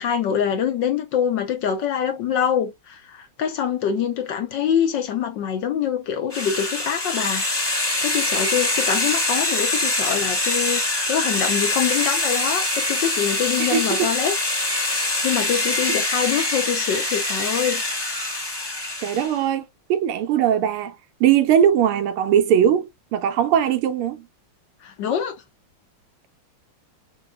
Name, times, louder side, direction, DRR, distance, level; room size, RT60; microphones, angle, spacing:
voice 1, 0.0-14.3 14.9-17.8 24.8-25.3, left 8 dB, 65° left, 1.4 m, -25 dB
sound 1, 6.3-19.4, left 2 dB, 15° left, 1.1 m, -24 dB
voice 2, 13.7-14.1 15.3-15.5 19.0-20.9 21.2-24.3, right 9 dB, 85° right, 1.7 m, -20 dB
6.5 x 2.2 x 3.3 m
omnidirectional pair, 2.4 m